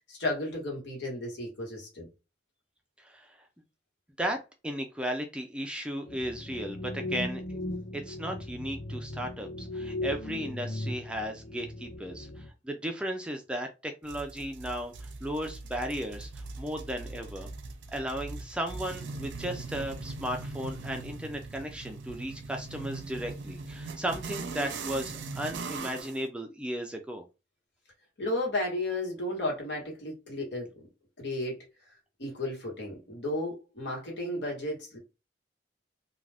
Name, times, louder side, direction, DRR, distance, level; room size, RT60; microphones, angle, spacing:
voice 1, 0.1-2.1 28.2-30.9 31.2-31.6 32.2-35.0, left 1 dB, 75° left, 1.3 m, -33 dB
voice 2, 3.0-3.5 4.2-7.6 7.9-17.5 17.9-27.2, equal, 5° right, 0.3 m, -35 dB
sound 1, 6.0-12.5, left 1 dB, 55° left, 0.7 m, -37 dB
sound 2, 14.1-26.2, right 3 dB, 85° right, 0.5 m, -40 dB
2.4 x 2.3 x 3.3 m
head